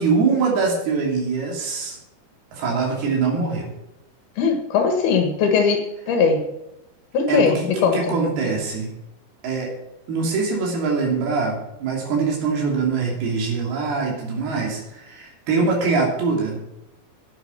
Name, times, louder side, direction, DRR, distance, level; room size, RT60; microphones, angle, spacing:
voice 1, 0.0-2.0 2.5-3.7 7.3-8.9 9.4-9.7 10.1-16.6, right 4 dB, 80° right, -1 dB, 4.8 m, -23 dB
voice 2, 4.4-6.5 7.1-8.2, left 5 dB, 80° left, 4 dB, 3.4 m, -20 dB
13.0 x 9.6 x 5.7 m, 0.88 s
omnidirectional pair, 4.4 m